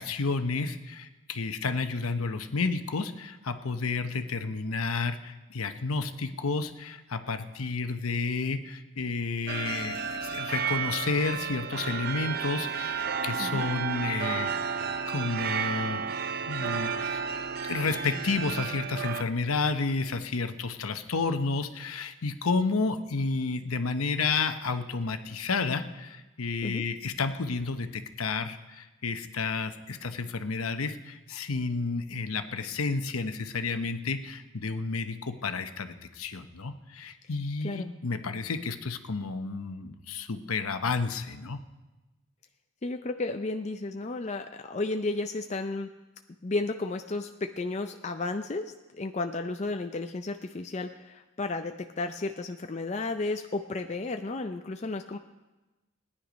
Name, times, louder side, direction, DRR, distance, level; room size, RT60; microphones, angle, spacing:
voice 1, 0.0-14.5 15.1-16.0 16.5-17.2 17.6-41.6, left 4 dB, 90° left, 8 dB, 0.9 m, -31 dB
sound 1, 9.5-19.2, right 6 dB, 45° right, 0.5 m, -32 dB
voice 2, 13.4-13.7 26.6-26.9 37.6-37.9 42.8-45.9 46.4-55.2, left 3 dB, 30° left, 6 dB, 0.5 m, -33 dB
17.5 x 10.0 x 5.1 m, 1.1 s
head